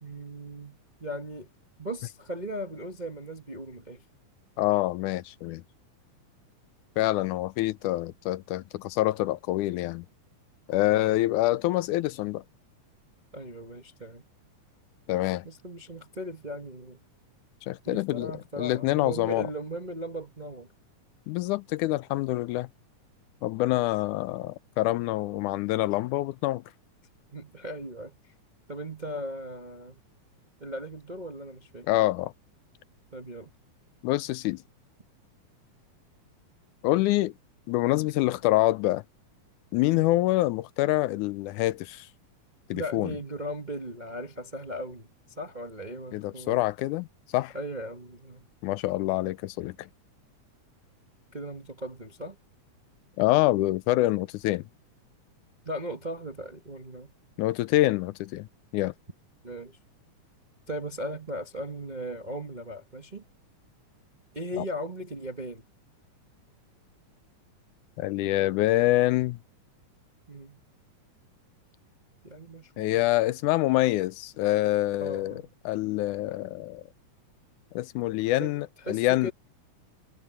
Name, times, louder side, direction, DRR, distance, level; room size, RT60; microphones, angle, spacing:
voice 1, 0.0-1.5 1.8-4.0 10.8-11.2 13.3-14.2 15.4-17.0 17.8-20.7 23.7-23.8 27.3-28.3 28.7-29.9 30.6-31.9 33.1-33.5 40.0-40.2 42.7-45.1 45.4-46.6 47.5-48.5 51.3-52.4 55.6-57.1 59.4-59.8 60.7-63.2 64.3-65.7 68.2-68.8 70.3-70.6 72.2-73.1 75.0-75.4 78.4-78.5 78.8-79.3, equal, 30° right, 0.8 m, -38 dB
voice 2, 4.6-5.6 7.0-10.1 10.7-12.4 15.1-15.5 17.6-19.5 21.3-22.7 23.4-26.6 31.9-32.3 34.0-34.6 36.8-37.3 37.7-39.0 39.7-42.1 42.7-43.1 46.1-47.1 47.3-47.5 48.6-49.9 53.2-54.6 57.4-58.5 58.7-58.9 64.6-64.7 68.0-69.4 72.8-76.8 77.7-79.3, left 17 dB, 80° left, 2.0 m, -26 dB
omnidirectional pair, 3.6 m